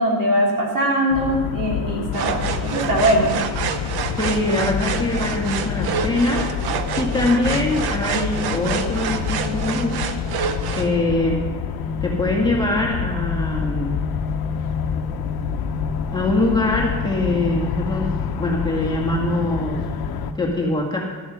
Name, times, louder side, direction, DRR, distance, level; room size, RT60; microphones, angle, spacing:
voice 1, 0.0-3.4, equal, 55° right, -2 dB, 3.5 m, -21 dB
sound 1, 1.1-20.3, left 6 dB, 75° left, 1.0 m, -27 dB
sound 2, 2.1-10.9, right 7 dB, 80° right, 1.0 m, -28 dB
voice 2, 4.1-6.4 7.0-10.2 10.8-11.4 12.0-14.0 16.1-18.1 18.4-19.8 20.4-21.0, left 2 dB, 10° left, -2 dB, 1.9 m, -23 dB
13.0 x 7.8 x 6.3 m, 1.4 s
cardioid pair, 130°, 37 cm